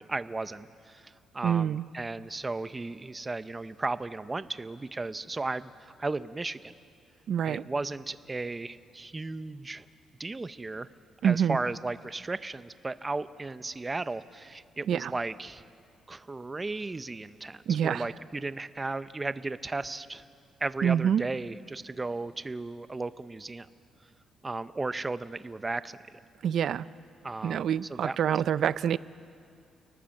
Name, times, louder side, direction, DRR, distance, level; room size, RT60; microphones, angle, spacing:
voice 1, 0.0-6.7 7.5-9.9 10.2-10.9 11.2-15.6 16.1-20.2 20.6-23.7 24.4-26.0 27.2-28.4, right 3 dB, 20° right, 13 dB, 0.6 m, -35 dB
voice 2, 1.4-1.8 7.3-7.6 11.2-11.6 14.9-15.1 17.7-18.1 20.8-21.2 26.4-26.9 27.4-29.0, right 9 dB, 60° right, 17 dB, 0.5 m, -26 dB
29.5 x 19.0 x 7.7 m, 2.3 s
cardioid pair, 140°, 0 cm